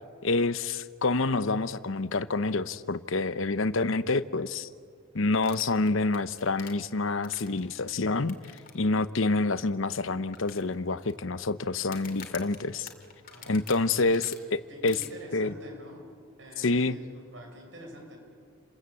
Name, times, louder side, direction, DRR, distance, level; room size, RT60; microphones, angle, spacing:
voice 1, 0.2-4.7 5.1-8.4 8.7-12.9 13.5-15.0 15.3-15.5 16.6-17.0, left 3 dB, 70° left, 14 dB, 0.9 m, -27 dB
sound 1, 5.4-7.7 8.3-8.7 9.0-9.1 9.6-9.7 10.3-11.1 11.8-14.4 14.9-15.1, left 8 dB, 40° left, 2.8 m, -46 dB
voice 2, 13.3-14.4 14.7-16.1 16.4-18.2, equal, 65° right, 2 dB, 6.1 m, -47 dB
30.0 x 21.5 x 8.5 m, 2.2 s
head